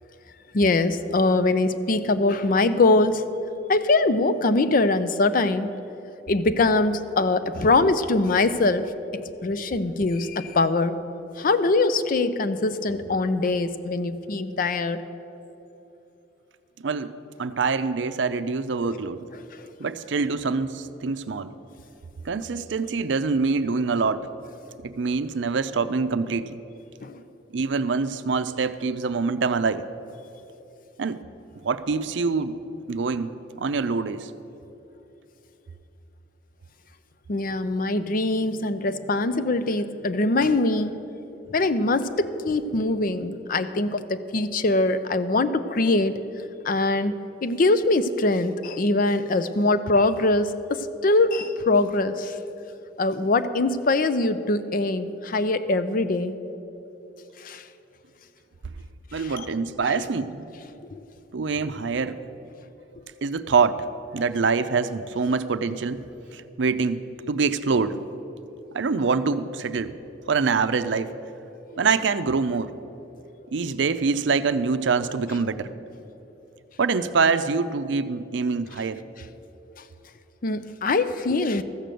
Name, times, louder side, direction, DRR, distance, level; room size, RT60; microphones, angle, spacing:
voice 1, 0.5-3.3 3.7-5.7 6.3-11.0 11.4-15.0 19.6-19.7 27.0-27.2 37.3-41.0 41.5-46.2 46.6-47.2 47.4-52.4 53.0-56.4 57.4-57.6 59.2-59.5 59.9-60.0 60.7-61.0 71.7-71.8 80.4-81.6, left 2 dB, 50° left, 12 dB, 0.5 m, -23 dB
voice 2, 16.8-17.1 17.4-19.3 19.8-21.5 22.2-24.3 24.8-26.6 27.5-29.9 31.0-31.2 31.6-32.6 32.9-34.3 59.1-60.5 61.3-62.2 63.2-63.9 64.1-66.0 66.3-67.0 67.3-68.0 68.7-70.0 70.3-71.2 71.8-72.7 73.5-75.7 76.8-79.0, right 4 dB, 75° right, 12 dB, 0.5 m, -25 dB
14.0 x 6.8 x 7.7 m, 3.0 s
head